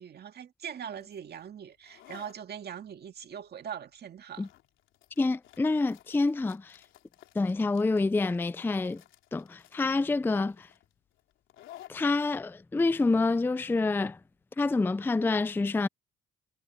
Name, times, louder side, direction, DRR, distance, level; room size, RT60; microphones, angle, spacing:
voice 1, 0.0-4.5, right 8 dB, 55° right, 2.0 m, -41 dB
sound 1, 1.0-14.4, left 13 dB, 85° left, 3.3 m, -56 dB
voice 2, 5.2-6.8 7.3-9.0 9.3-10.7 11.9-14.2 14.6-15.9, left 3 dB, 10° left, 0.4 m, -27 dB
cardioid pair, 85°, 20 cm